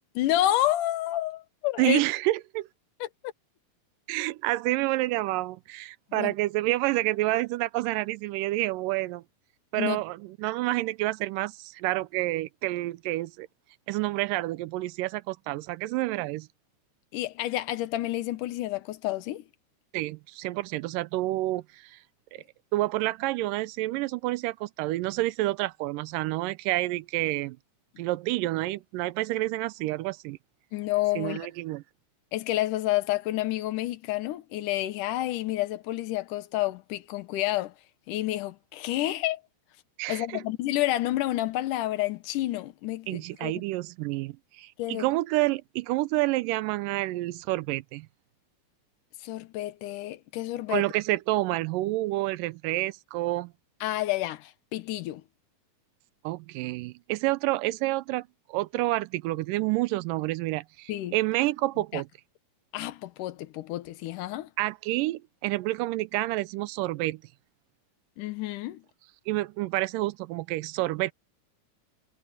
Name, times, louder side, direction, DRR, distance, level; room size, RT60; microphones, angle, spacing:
voice 1, 0.2-2.0 3.0-3.1 6.1-6.3 9.7-10.0 17.1-19.4 30.7-31.5 32.3-37.7 38.1-39.4 40.1-43.5 44.8-45.1 49.2-50.8 53.8-55.2 60.9-61.2 61.9-62.0 62.7-64.5 68.2-68.8, left 15 dB, 75° left, 2.5 m, -29 dB
voice 2, 1.8-2.7 4.1-9.2 9.7-13.5 13.9-16.5 19.9-22.0 22.7-27.6 28.0-30.4 31.2-31.8 40.0-40.4 43.1-48.1 50.7-53.5 56.2-62.1 64.6-67.2 69.3-71.1, right 18 dB, 90° right, 2.3 m, -29 dB
omnidirectional pair, 3.8 m